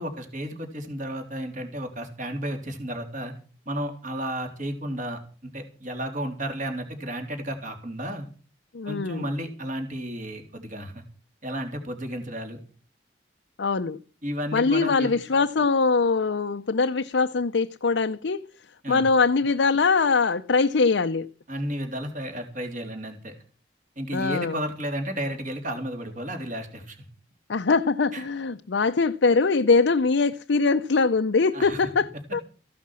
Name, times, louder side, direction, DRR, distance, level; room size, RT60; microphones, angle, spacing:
voice 1, 0.0-3.3 3.7-8.3 8.9-11.0 11.4-12.6 14.2-15.1 18.8-19.0 21.5-23.3 24.0-27.0 28.1-28.2 31.5-31.8, equal, 45° right, 3.7 m, -33 dB
voice 2, 8.7-9.3 13.6-14.0 14.5-18.4 18.9-21.3 24.1-24.6 27.5-32.4, left 4 dB, 75° left, 0.6 m, -22 dB
15.5 x 11.5 x 6.2 m
head